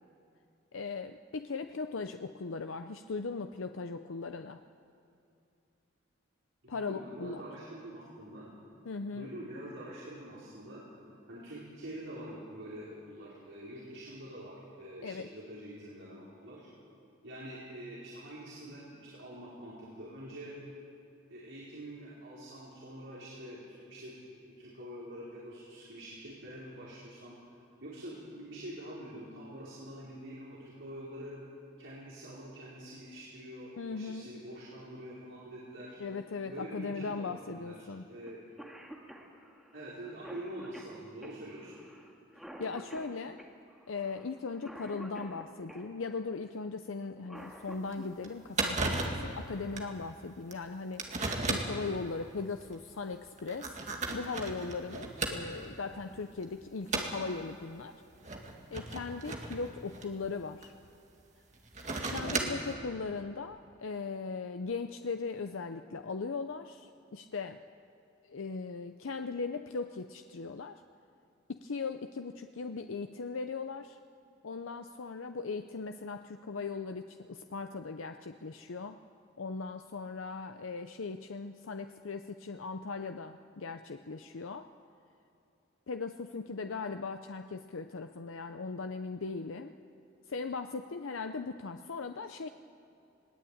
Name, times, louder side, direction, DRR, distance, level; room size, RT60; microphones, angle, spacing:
voice 1, 0.7-4.6 6.7-7.4 8.9-9.3 15.0-15.3 33.8-34.3 36.0-38.1 42.6-43.4 43.9-51.1 51.4-53.7 54.1-58.0 58.7-60.7 62.1-67.6 68.2-70.8 71.5-74.0 74.4-79.0 79.4-84.7 85.9-89.7 90.3-92.5, left 4 dB, 85° left, 7 dB, 0.7 m, -38 dB
voice 2, 6.6-8.5 9.1-10.8 11.3-16.7 17.2-20.6 21.3-24.1 24.4-27.4 27.8-31.4 31.8-36.0 36.4-37.8 38.1-38.4 39.7-41.8, right 1 dB, 75° right, -8 dB, 5.1 m, -45 dB
Cough, 38.3-38.4 38.6-45.9 47.0-48.1 49.7-49.8 50.8-51.1 51.6-51.7 52.1-52.5, equal, ahead, 2.0 m, -49 dB
sound 1, 47.4-47.5 47.9-48.0 48.2-48.3 48.6-49.3 49.8-49.9 50.5-50.6 51.0-51.8 52.6-52.8 53.4-55.7 56.1-56.4 56.9-57.2 58.2-60.7 61.5-62.7, right 3 dB, 35° right, 2.1 m, -34 dB
21.0 x 18.5 x 8.7 m, 2.6 s
head